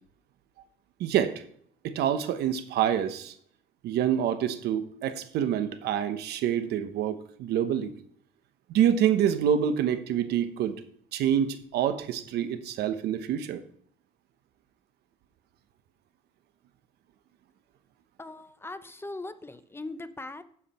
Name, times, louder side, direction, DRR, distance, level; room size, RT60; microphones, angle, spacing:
voice 1, 1.0-1.4 1.8-3.3 3.8-7.9 8.7-10.8 11.1-13.6, right 9 dB, 75° right, 11 dB, 0.9 m, -27 dB
voice 2, 18.2-20.4, left 2 dB, 15° left, 11 dB, 0.6 m, -40 dB
8.4 x 7.3 x 4.2 m, 0.64 s
cardioid pair, 110°, 17 cm